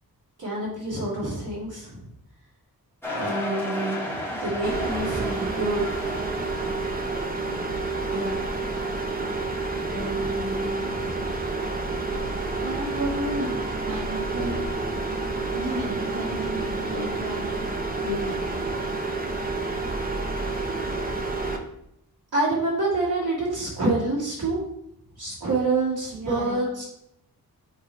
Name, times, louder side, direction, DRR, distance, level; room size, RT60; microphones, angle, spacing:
voice 1, 0.4-2.0 3.1-5.9 8.1-8.4 9.9-11.2 12.6-13.5 22.3-24.6 25.2-26.8, right 2 dB, 80° right, -8 dB, 2.1 m, -28 dB
sound 1, 3.0-7.1, left 1 dB, 5° left, 1.2 m, -33 dB
sound 2, 4.6-21.6, right 3 dB, 25° right, 0.8 m, -29 dB
voice 2, 13.9-14.6 15.5-17.8 18.0-18.4 26.1-26.6, right 1 dB, 55° right, 1 dB, 1.4 m, -34 dB
7.3 x 2.9 x 4.5 m, 0.77 s
wide cardioid pair, 110°, 37 cm